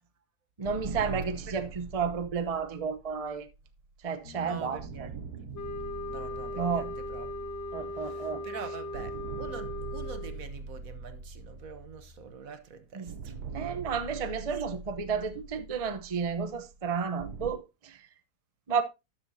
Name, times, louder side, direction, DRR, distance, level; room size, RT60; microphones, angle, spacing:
voice 1, 0.6-3.4 4.0-4.8 6.6-6.9 7.7-8.4 13.0-13.1 13.5-18.0 18.7-18.8, right 6 dB, 30° right, 0.8 m, -32 dB
sound 1, 0.6-4.2 4.8-8.6 8.9-12.6 13.1-17.5, right 5 dB, 85° right, 1.3 m, -43 dB
Piano, 4.2-12.3, left 4 dB, 90° left, 2.0 m, -52 dB
voice 2, 4.4-5.3 6.1-7.3 7.9-13.3, right 6 dB, 65° right, 1.5 m, -45 dB
sound 2, 5.5-10.4, left 1 dB, 50° left, 1.2 m, -38 dB
12.5 x 8.2 x 2.8 m
omnidirectional pair, 1.6 m